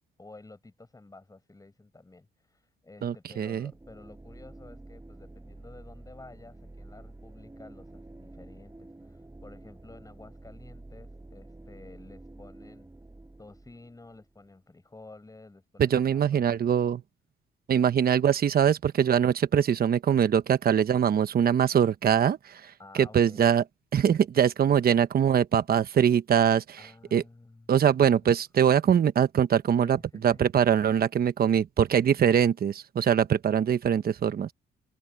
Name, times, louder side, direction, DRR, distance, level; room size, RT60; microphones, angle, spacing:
voice 1, 0.2-12.9 13.4-16.9 22.8-23.5 26.8-27.7 28.0-28.3 29.8-30.4, left 2 dB, 15° left, 7.2 m, -51 dB
voice 2, 3.0-3.7 15.8-17.0 17.7-23.6 23.9-26.8 27.1-27.2 27.7-30.0 30.2-34.5, right 8 dB, 50° right, 1.1 m, -23 dB
sound 1, 3.7-14.5, right 2 dB, 15° right, 7.3 m, -49 dB
cardioid pair, 90°, 20 cm